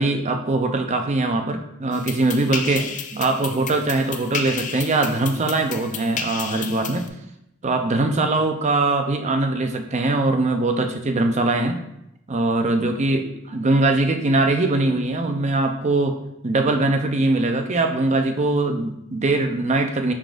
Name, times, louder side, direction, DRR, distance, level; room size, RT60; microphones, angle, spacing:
voice 1, 0.0-7.1 7.6-11.8 12.3-16.2 16.4-20.1, right 2 dB, 35° right, 5 dB, 0.6 m, -21 dB
sound 1, 1.9-7.1, left 6 dB, 35° left, 0.4 m, -32 dB
10.0 x 3.7 x 2.5 m, 0.82 s
head